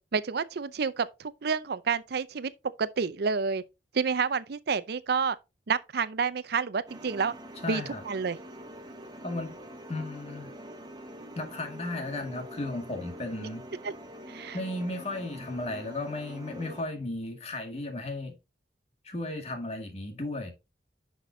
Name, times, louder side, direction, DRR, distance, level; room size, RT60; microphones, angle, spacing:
voice 1, 0.0-2.5 2.8-3.6 3.9-5.4 5.7-7.3 7.7-8.4 13.4-13.5 14.3-14.6, right 5 dB, 60° right, 0.5 m, -29 dB
sound 1, 6.9-16.8, equal, 25° right, 1.2 m, -45 dB
voice 2, 7.6-8.0 9.2-9.5 9.9-10.5 11.4-13.7 14.5-18.4 19.0-20.5, left 2 dB, 35° left, 2.0 m, -35 dB
10.5 x 5.8 x 2.7 m
head